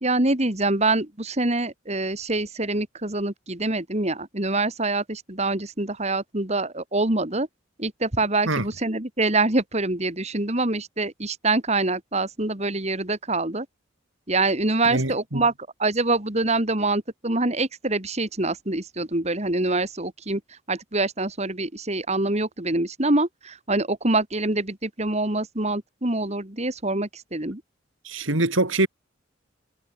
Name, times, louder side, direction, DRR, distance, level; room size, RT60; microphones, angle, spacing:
voice 1, 0.0-7.5 7.8-13.7 14.3-15.5 15.8-27.6, right 2 dB, 35° right, 2.6 m, -25 dB
voice 2, 14.9-15.4 28.0-28.9, right 2 dB, 80° right, 3.6 m, -24 dB
head